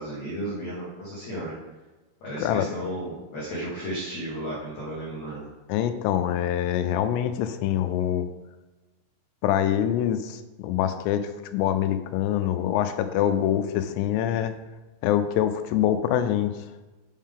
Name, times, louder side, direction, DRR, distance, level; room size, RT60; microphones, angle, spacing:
voice 1, 0.0-1.5 2.2-5.5, right 1 dB, 65° left, -6 dB, 1.9 m, -34 dB
voice 2, 2.4-2.7 5.7-8.3 9.4-14.5 15.0-16.5, left 10 dB, 85° left, 9 dB, 3.1 m, -25 dB
7.3 x 7.1 x 3.7 m, 1.2 s
omnidirectional pair, 5.7 m